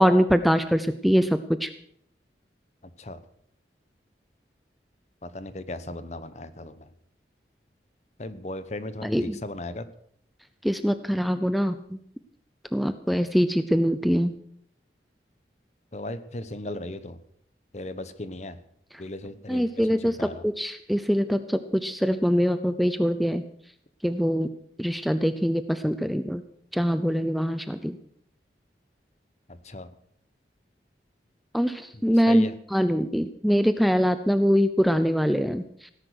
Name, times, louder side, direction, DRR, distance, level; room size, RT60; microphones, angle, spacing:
voice 1, 0.0-1.7 9.0-9.4 10.6-12.0 12.7-14.3 19.5-23.4 24.0-24.5 24.8-26.4 26.7-28.0 31.5-35.6, equal, ahead, 11 dB, 0.6 m, -23 dB
voice 2, 5.2-6.9 8.2-9.9 15.9-17.2 17.7-18.6 19.0-20.4 29.5-29.9 31.9-32.6, left 1 dB, 40° left, 13 dB, 1.0 m, -37 dB
17.5 x 10.5 x 6.5 m, 0.68 s
head